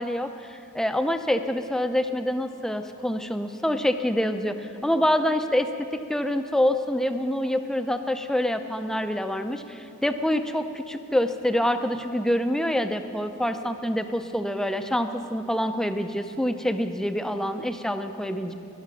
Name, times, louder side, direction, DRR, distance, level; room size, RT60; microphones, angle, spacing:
voice 1, 0.0-18.5, left 1 dB, ahead, 8 dB, 0.5 m, -26 dB
19.5 x 6.6 x 6.1 m, 2.8 s
head